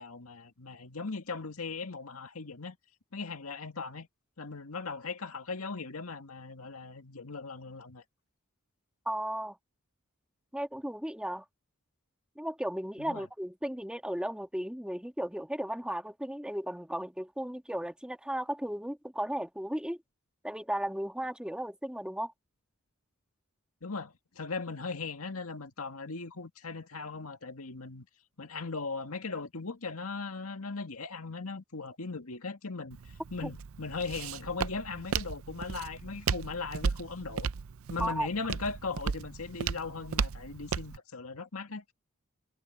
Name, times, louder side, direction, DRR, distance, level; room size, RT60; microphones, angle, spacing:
voice 1, 0.0-2.8 3.1-4.1 4.4-8.0 13.0-13.3 23.8-28.1 28.4-33.0 33.3-37.5 37.9-41.8, left 4 dB, 85° left, 2.0 m, -38 dB
voice 2, 9.1-9.6 10.5-11.4 12.4-20.0 20.4-22.3 33.4-33.5 38.0-38.3, right 1 dB, 5° right, 1.7 m, -35 dB
Walk footsteps, 32.9-41.0, right 6 dB, 70° right, 0.5 m, -35 dB
head